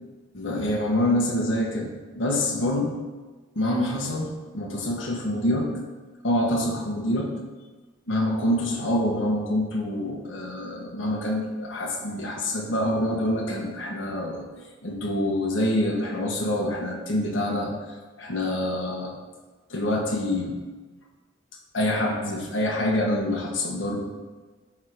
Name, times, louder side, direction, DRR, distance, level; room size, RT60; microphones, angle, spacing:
voice 1, 0.3-2.9 3.5-5.7 6.2-7.3 8.1-14.5 14.8-17.7 18.2-19.1 19.7-20.6 21.7-24.0, left 1 dB, 75° left, -1 dB, 1.2 m, -26 dB
10.5 x 3.7 x 5.0 m, 1.3 s
head